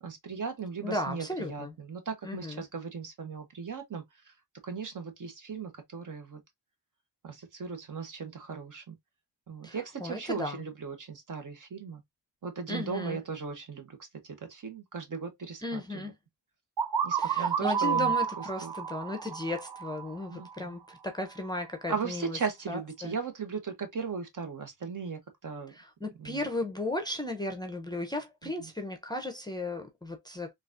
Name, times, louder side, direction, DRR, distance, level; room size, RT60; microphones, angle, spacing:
voice 1, 0.0-4.3 4.6-6.4 7.2-8.9 9.5-12.0 12.4-16.1 17.0-18.1 18.6-18.7 20.3-20.5 21.9-25.7 26.2-26.4, right 5 dB, 45° right, 1.1 m, -37 dB
voice 2, 0.8-1.7 2.2-2.6 9.6-10.6 12.7-13.2 15.6-16.1 17.1-22.4 22.7-23.2 25.7-30.5, left 1 dB, 10° left, 0.6 m, -35 dB
sound 1, 16.8-20.5, right 7 dB, 65° right, 0.9 m, -30 dB
3.9 x 2.5 x 2.4 m
cardioid pair, 90°, 42 cm